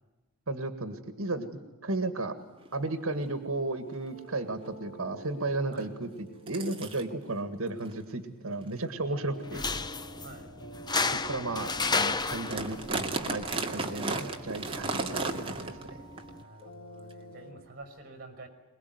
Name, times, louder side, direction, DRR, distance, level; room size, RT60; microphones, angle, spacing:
voice 1, 0.5-1.5 1.8-2.4 2.7-6.1 6.5-9.6 11.2-15.8, right 2 dB, 75° right, 9 dB, 1.9 m, -34 dB
sound 1, 0.9-17.6, right 2 dB, 90° left, 2.4 m, -51 dB
sound 2, 2.6-2.7 3.1-3.4 3.9-4.0 4.4-4.7 5.8-5.9 6.5-7.0 7.8-7.9 8.5-8.7 9.3-9.4 10.1-10.3 10.9-11.0 11.4-11.5 11.7-11.9 12.2-15.9 16.2-16.3 17.1-17.2, right 3 dB, 25° right, 2.4 m, -34 dB
sound 3, 9.4-16.4, left 4 dB, 20° left, 0.8 m, -34 dB
voice 2, 10.2-10.6 16.4-18.5, right 2 dB, 50° right, 8 dB, 5.7 m, -48 dB
23.0 x 22.0 x 9.5 m, 1.1 s
head